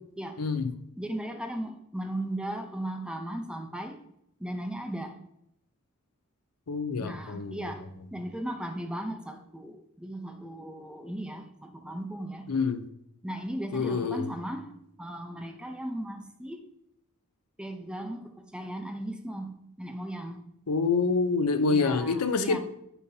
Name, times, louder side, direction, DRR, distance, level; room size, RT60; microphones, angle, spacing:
voice 1, 0.4-0.7 6.7-7.7 12.5-12.8 13.7-14.3 20.7-22.6, left 4 dB, 85° left, 0.7 m, -27 dB
voice 2, 1.0-4.0 4.4-5.2 7.0-7.8 8.1-12.5 13.2-14.7 15.0-16.6 17.6-20.4 21.7-22.6, right 1 dB, 5° right, 0.7 m, -37 dB
13.0 x 5.2 x 2.8 m
head